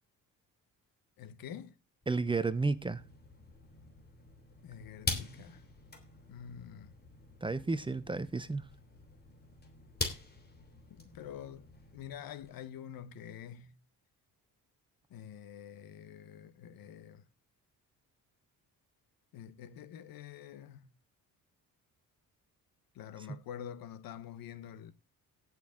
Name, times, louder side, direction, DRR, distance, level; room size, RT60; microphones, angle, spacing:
voice 1, 1.2-1.8 4.6-5.6 6.3-6.9 10.9-13.8 15.1-17.2 19.3-20.9 22.9-24.9, left 9 dB, 75° left, 1.2 m, -47 dB
sound 1, 2.0-12.5, left 3 dB, 30° left, 3.0 m, -44 dB
voice 2, 2.1-3.0 7.4-8.7, right 3 dB, 15° right, 0.8 m, -32 dB
17.5 x 6.4 x 3.7 m
cardioid pair, 125°, 35 cm